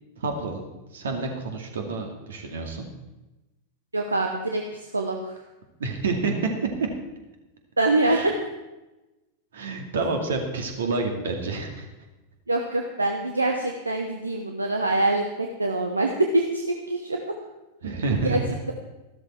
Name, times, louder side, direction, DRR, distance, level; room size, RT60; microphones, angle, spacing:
voice 1, 0.2-2.9 5.8-6.5 6.8-6.9 8.0-8.3 9.5-11.9 17.8-18.6, right 3 dB, 65° right, 4 dB, 2.2 m, -28 dB
voice 2, 3.9-5.4 7.8-8.3 12.5-17.2 18.1-18.4, right 2 dB, 80° right, 3 dB, 1.0 m, -25 dB
14.0 x 12.5 x 4.5 m, 1.1 s
figure-of-eight pair, 90°, 0 cm